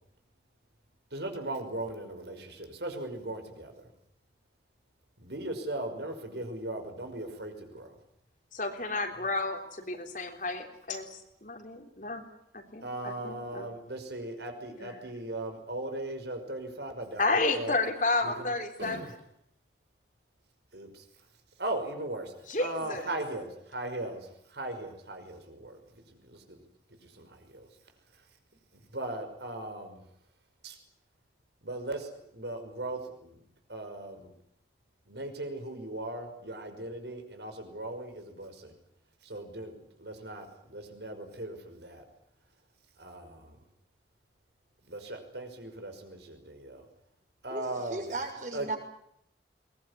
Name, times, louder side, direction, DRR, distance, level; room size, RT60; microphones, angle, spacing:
voice 1, 1.1-3.9 5.2-8.0 12.8-17.8 18.2-18.5 18.8-19.1 20.7-21.0 21.6-22.3 22.6-26.6 27.0-27.7 28.7-30.0 30.6-30.8 31.6-33.4 33.7-34.3 35.1-38.7 39.2-42.0 43.0-43.6 44.9-46.9 47.4-48.0 48.5-48.8, right 2 dB, 70° right, 6 dB, 5.6 m, -38 dB
voice 2, 8.5-12.3 12.5-13.7 14.8-15.0 17.2-19.1 22.5-23.1, left 3 dB, 45° left, 5 dB, 3.6 m, -31 dB
voice 3, 47.5-48.8, right 2 dB, 45° right, 3 dB, 6.6 m, -36 dB
22.5 x 21.0 x 9.9 m, 0.75 s
head